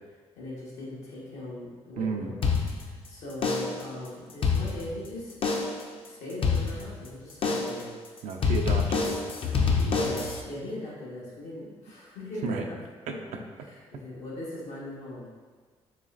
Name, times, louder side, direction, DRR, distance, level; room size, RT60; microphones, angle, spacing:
voice 1, 0.4-2.4 2.8-5.4 6.0-8.0 9.8-12.8 13.1-13.2 13.6-15.3, left 1 dB, 85° left, -6 dB, 1.2 m, -39 dB
voice 2, 2.0-2.3 8.2-9.2 12.4-12.7 13.1-13.2, right 5 dB, 75° right, 4 dB, 0.4 m, -31 dB
sound 1, 2.4-3.1 3.4-3.9 4.3-5.1 5.4-5.9 6.4-7.1 7.4-7.9 8.4-10.4, left 5 dB, 50° left, 0.5 m, -27 dB
4.0 x 3.1 x 2.4 m, 1.5 s
supercardioid pair, 70°, 12 cm